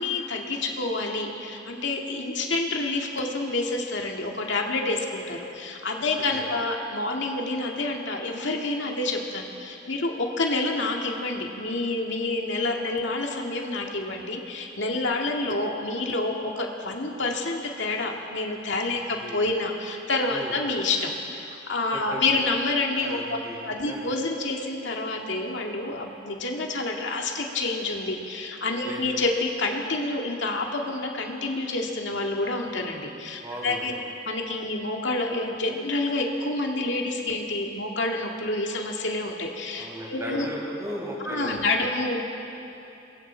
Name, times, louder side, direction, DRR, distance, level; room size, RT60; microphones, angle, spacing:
voice 1, 0.0-23.4 23.7-33.9 34.3-40.5 41.2-42.2, left 2 dB, 80° left, 1 dB, 2.0 m, -28 dB
voice 2, 18.9-19.4 20.3-20.5 21.9-22.2 23.0-24.1 28.8-29.0 33.4-34.0 39.8-41.9, equal, 15° right, -4 dB, 5.5 m, -37 dB
27.5 x 22.0 x 4.5 m, 2.8 s
head